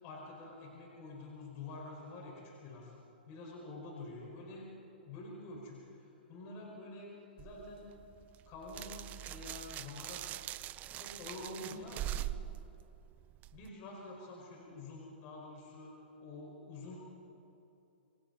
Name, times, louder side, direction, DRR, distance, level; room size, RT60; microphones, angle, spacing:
voice 1, 0.0-2.9 3.3-4.7 5.1-7.9 8.5-10.4 10.9-12.3 13.5-15.9 16.2-17.0, left 2 dB, 40° left, -3 dB, 5.1 m, -47 dB
sound 1, 7.4-13.7, right 13 dB, 25° right, 0.5 m, -43 dB
27.5 x 23.5 x 4.1 m, 2.9 s
hypercardioid pair, 130°, 6 cm